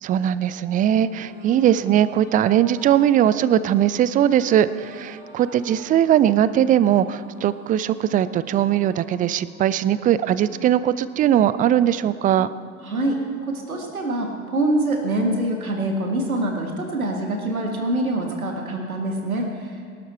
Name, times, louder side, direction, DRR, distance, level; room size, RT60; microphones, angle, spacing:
voice 1, 0.0-12.5, right 10 dB, 20° right, 16 dB, 0.4 m, -20 dB
sound 1, 0.9-14.5, right 1 dB, 65° right, 3.5 m, -46 dB
voice 2, 12.8-19.8, right 1 dB, 85° right, 2 dB, 1.8 m, -25 dB
19.0 x 12.0 x 4.4 m, 2.2 s
figure-of-eight pair, 70°, 42 cm